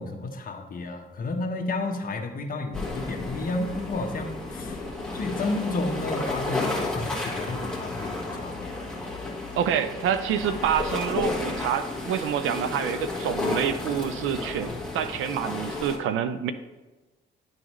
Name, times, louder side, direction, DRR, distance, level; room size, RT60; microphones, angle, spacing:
voice 1, 0.0-4.8 5.1-8.9, left 2 dB, 45° left, 2 dB, 1.1 m, -32 dB
sound 1, 2.7-16.0, left 2 dB, 5° left, 1.6 m, -32 dB
voice 2, 9.6-16.5, right 8 dB, 85° right, 12 dB, 0.5 m, -27 dB
10.5 x 3.9 x 3.1 m, 1.2 s
cardioid pair, 90°, 20 cm